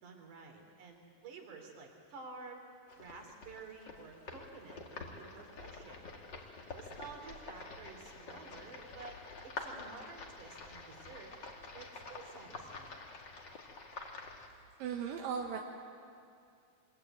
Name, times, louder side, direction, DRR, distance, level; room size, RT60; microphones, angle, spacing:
voice 1, 0.0-2.6 3.0-6.0 6.7-9.2 9.4-11.4 11.7-13.0, right 4 dB, 65° right, 3 dB, 4.5 m, -51 dB
sound 1, 2.9-14.5, left 3 dB, 35° left, 2.1 m, -48 dB
voice 2, 14.8-15.6, right 7 dB, 85° right, 2 dB, 2.9 m, -37 dB
25.0 x 22.0 x 9.1 m, 2.4 s
omnidirectional pair, 4.0 m